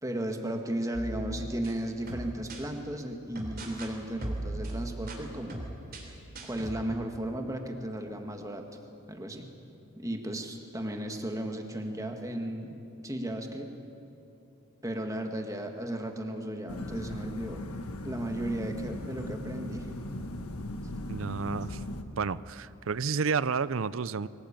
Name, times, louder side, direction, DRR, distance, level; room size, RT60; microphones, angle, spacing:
voice 1, 0.0-5.7 6.4-8.7 9.1-9.5 10.0-13.7 14.8-17.6 18.0-19.9, right 1 dB, 15° right, 4 dB, 1.7 m, -35 dB
sound 1, 0.9-2.7 3.4-3.9 4.2-6.8, right 1 dB, 45° right, 3.3 m, -39 dB
sound 2, 16.7-22.0, left 1 dB, 90° left, 1.5 m, -38 dB
voice 2, 21.1-21.8 22.2-24.3, right 5 dB, 65° right, 18 dB, 0.5 m, -30 dB
23.5 x 18.0 x 8.9 m, 2.8 s
head